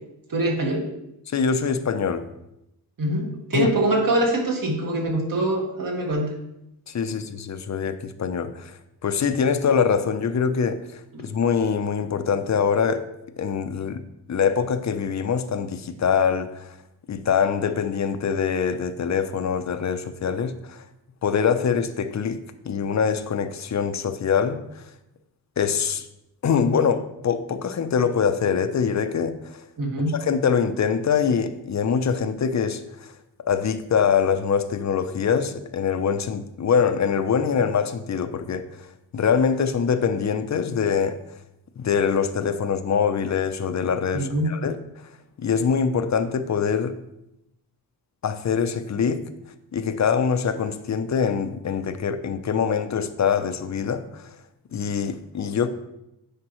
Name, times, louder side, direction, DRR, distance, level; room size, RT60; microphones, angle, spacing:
voice 1, 0.3-0.9 3.0-6.3 7.1-7.2 11.1-11.3 29.8-30.1 44.1-44.5, right 1 dB, 55° right, 0 dB, 1.7 m, -24 dB
voice 2, 1.3-2.2 3.5-3.7 6.9-13.0 13.4-14.0 14.3-16.7 17.1-20.8 21.2-24.8 25.6-26.1 26.4-29.6 30.1-33.1 33.5-38.9 39.1-41.2 41.8-44.8 45.4-47.0 48.2-49.3 49.7-54.4 54.7-55.7, left 6 dB, 45° left, 10 dB, 0.6 m, -24 dB
9.7 x 5.1 x 3.1 m, 0.85 s
wide cardioid pair, 110°, 41 cm